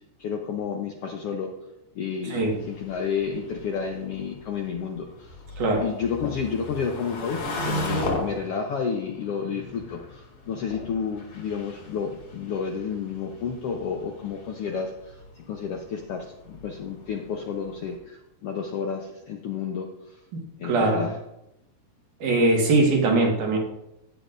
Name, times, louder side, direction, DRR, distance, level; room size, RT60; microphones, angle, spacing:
voice 1, 0.2-1.5 1.9-5.4 5.8-19.9 20.6-21.2, left 6 dB, 70° left, 2 dB, 1.4 m, -31 dB
sound 1, 2.4-18.0, left 1 dB, 50° left, 2.9 m, -37 dB
voice 2, 20.6-21.1 22.2-23.6, right 2 dB, 75° right, -1 dB, 3.2 m, -21 dB
15.0 x 9.3 x 2.6 m, 0.85 s
omnidirectional pair, 3.6 m